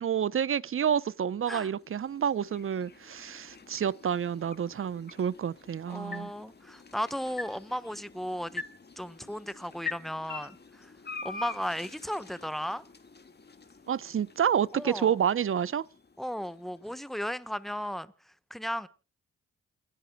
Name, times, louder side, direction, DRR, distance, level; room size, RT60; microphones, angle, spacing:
voice 1, 0.0-6.3 13.9-15.9, right 8 dB, 45° right, 0.7 m, -29 dB
sound 1, 1.0-17.2, left 4 dB, 35° left, 1.8 m, -46 dB
voice 2, 5.9-8.6 9.0-10.9 11.2-12.8 14.7-15.2 16.2-18.9, equal, ahead, 1.2 m, -35 dB
29.0 x 11.5 x 2.2 m
supercardioid pair, 50°, 30 cm